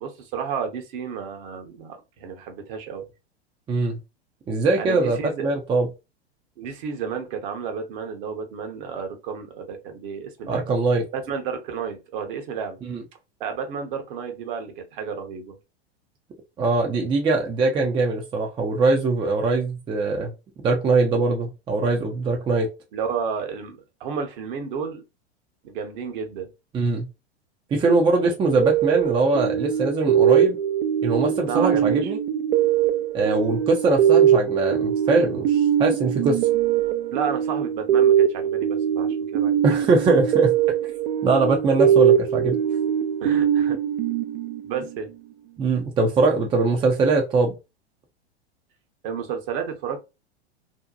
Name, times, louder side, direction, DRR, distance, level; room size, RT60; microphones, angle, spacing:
voice 1, 0.0-3.1 4.8-5.5 6.6-10.8 11.1-12.8 13.4-15.6 22.9-25.0 25.6-26.5 31.4-32.1 37.1-39.6 43.2-43.8 44.6-45.1 49.0-50.0, right 6 dB, 50° right, 0.8 m, -32 dB
voice 2, 3.7-4.0 4.5-5.9 10.5-11.0 12.8-13.0 16.6-20.3 20.6-22.7 26.7-27.1 27.7-30.6 31.0-32.2 33.1-36.4 39.6-40.5 41.2-42.6 45.6-47.6, right 3 dB, 15° right, 0.4 m, -22 dB
sound 1, 28.6-45.0, right 9 dB, 65° right, 0.5 m, -21 dB
2.7 x 2.1 x 2.4 m
hypercardioid pair, 95°, 33 cm